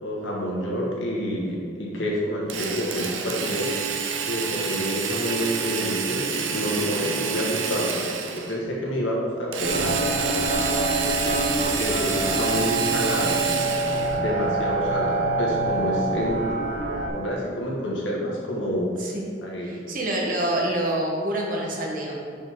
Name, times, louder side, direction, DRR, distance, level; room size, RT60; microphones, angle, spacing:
voice 1, 0.0-3.7 4.3-10.0 10.3-10.5 11.5-13.4 13.8-16.5 17.1-18.9 19.4-19.8, equal, 90° left, -3 dB, 1.5 m, -28 dB
Drill, 2.5-8.6 9.5-14.2, right 6 dB, 90° right, 0.6 m, -28 dB
sound 1, 9.6-17.1, right 2 dB, 70° right, 1.1 m, -26 dB
voice 2, 14.1-14.5 19.0-19.2 19.6-22.2, right 1 dB, 45° right, -1 dB, 1.1 m, -27 dB
6.3 x 5.3 x 3.6 m, 2.2 s
head